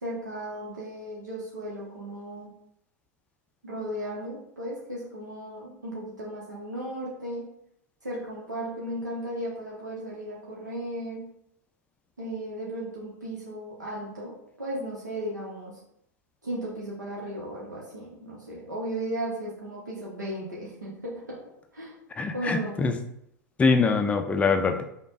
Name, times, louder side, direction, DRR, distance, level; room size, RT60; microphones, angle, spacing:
voice 1, 0.0-2.5 3.6-7.5 8.0-11.2 12.2-14.3 14.6-15.8 16.4-21.4 21.7-22.0 22.3-22.8, right 1 dB, 85° right, -6 dB, 0.9 m, -35 dB
voice 2, 22.1-22.9 23.6-24.8, left 4 dB, 15° left, 6 dB, 0.4 m, -23 dB
5.1 x 2.2 x 2.5 m, 0.75 s
figure-of-eight pair, 95°, 9 cm